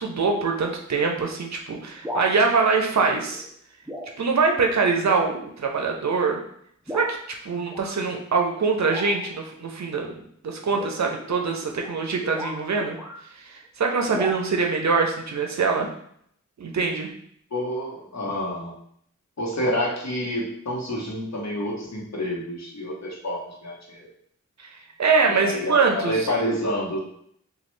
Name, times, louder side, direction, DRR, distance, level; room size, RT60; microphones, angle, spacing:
voice 1, 0.0-3.4 4.2-6.4 6.9-13.0 13.4-15.9 16.6-17.1 24.6-26.1, right 4 dB, 65° right, 2 dB, 0.5 m, -24 dB
sound 1, 1.9-2.3 3.3-3.5 3.9-4.2 4.5-4.6 5.0-5.3 6.0-6.1 6.9-7.2 7.7-8.0 8.8-9.4 10.7-13.3 14.1-14.3, left 1 dB, 5° right, 0.4 m, -36 dB
voice 2, 17.5-18.7 19.4-24.1 25.3-27.0, equal, 60° left, -3 dB, 0.9 m, -28 dB
3.1 x 2.3 x 3.1 m, 0.68 s
wide cardioid pair, 85°, 31 cm